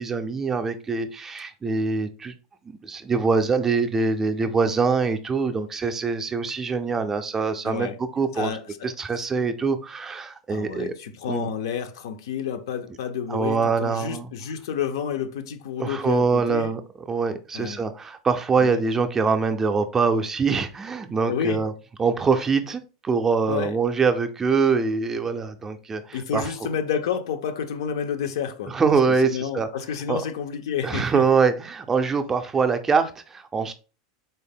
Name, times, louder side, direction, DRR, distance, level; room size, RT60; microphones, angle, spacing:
voice 1, 0.0-2.3 2.7-8.6 8.8-10.9 11.3-11.5 13.3-14.3 15.8-16.8 17.1-21.7 22.0-26.5 28.7-29.7 30.1-30.3 30.8-33.7, right 5 dB, 15° right, 0.4 m, -24 dB
voice 2, 7.6-8.0 8.4-8.9 10.5-16.7 17.5-17.8 18.6-18.8 21.3-21.6 23.5-23.8 26.1-28.8 29.2-31.2, left 8 dB, 80° left, 0.5 m, -30 dB
4.0 x 2.1 x 3.4 m
supercardioid pair, 150°, 2 cm